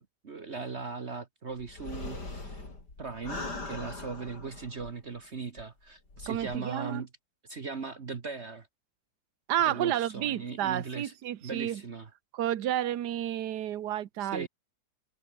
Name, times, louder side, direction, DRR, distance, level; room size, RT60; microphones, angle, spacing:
voice 1, 0.0-2.6 3.0-7.1 7.4-8.7 9.6-11.1 11.4-12.1 14.2-14.5, right 4 dB, 45° right, 1.6 m, -39 dB
sound 1, 1.6-5.2 5.6-5.7 6.1-6.6, left 2 dB, 85° left, 6.2 m, -41 dB
voice 2, 6.3-7.0 9.5-11.8 12.3-14.5, right 11 dB, 80° right, 1.5 m, -31 dB
omnidirectional pair, 1.8 m